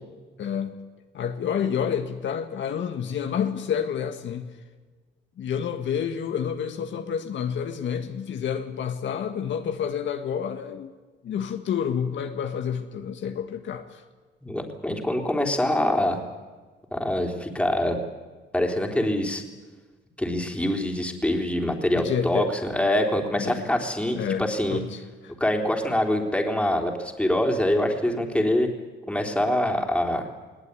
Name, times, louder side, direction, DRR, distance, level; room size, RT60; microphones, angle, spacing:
voice 1, 0.4-0.8 1.1-4.5 5.4-10.9 11.2-14.0 21.9-22.5 23.4-23.6 24.2-25.3, left 8 dB, 70° left, 6 dB, 1.7 m, -29 dB
voice 2, 14.4-16.2 16.9-18.0 18.5-19.4 20.2-24.8 25.4-28.7 29.1-30.3, left 1 dB, 5° left, 2 dB, 3.6 m, -24 dB
20.0 x 18.0 x 9.8 m, 1.4 s
cardioid pair, 90°, 20 cm